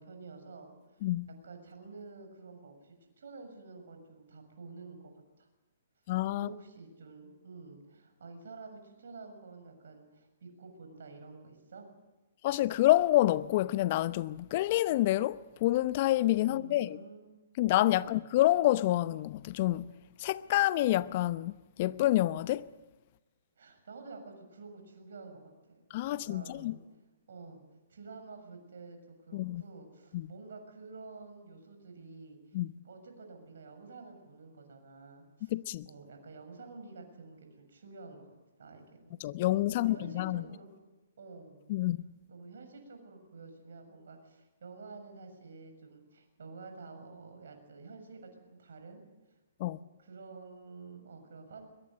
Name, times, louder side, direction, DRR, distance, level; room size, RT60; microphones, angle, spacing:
voice 1, 0.0-1.0 1.4-5.5 6.3-11.9 16.4-17.3 17.9-18.1 23.6-25.4 25.7-25.8 26.3-26.8 27.3-27.6 27.9-32.6 32.8-35.5 35.8-38.3 38.6-39.2 39.7-40.9 41.2-41.6 42.3-49.0 49.6-51.7, right 4 dB, 65° right, 6.8 m, -49 dB
voice 2, 6.1-6.5 12.4-17.0 17.6-19.9 20.2-21.5 21.8-22.7 25.9-26.7 29.3-29.6 30.1-30.3 32.5-32.7 35.5-35.9 39.2-40.4 41.7-42.0 49.6-49.8, left 15 dB, 40° left, 0.8 m, -28 dB
22.5 x 21.5 x 8.0 m
figure-of-eight pair, 125°, 0 cm